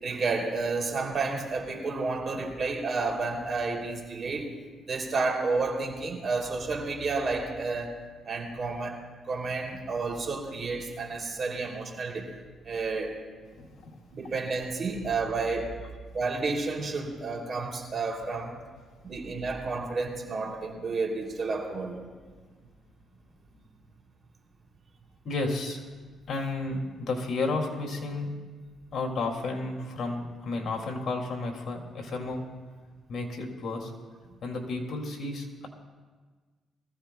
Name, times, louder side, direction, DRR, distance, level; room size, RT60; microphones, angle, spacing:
voice 1, 0.0-4.5 4.9-7.9 8.2-9.0 9.3-12.3 12.6-13.1 14.1-15.7 16.1-18.6 19.0-22.0, right 3 dB, 45° right, 1 dB, 2.9 m, -31 dB
voice 2, 13.6-14.1 23.5-23.6 25.2-25.8 26.3-28.3 28.9-32.4 33.1-33.9 34.4-35.7, left 3 dB, 60° left, 0 dB, 2.4 m, -32 dB
22.5 x 15.0 x 2.3 m, 1.4 s
cardioid pair, 90°, 0 cm